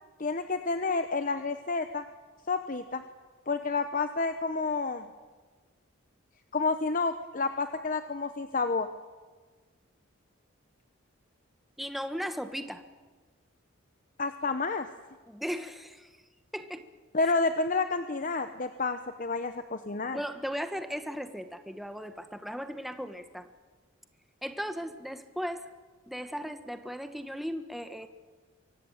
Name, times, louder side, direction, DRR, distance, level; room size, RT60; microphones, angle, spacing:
voice 1, 0.2-2.0 2.5-3.0 3.5-5.1 6.5-8.9 14.2-14.9 17.1-20.2, left 3 dB, 40° left, 9 dB, 0.9 m, -30 dB
voice 2, 11.8-12.8 15.3-16.1 16.5-16.8 17.2-17.3 20.1-23.5 24.4-25.7 26.1-28.1, equal, ahead, 8 dB, 1.2 m, -37 dB
24.0 x 17.5 x 9.0 m, 1.4 s
head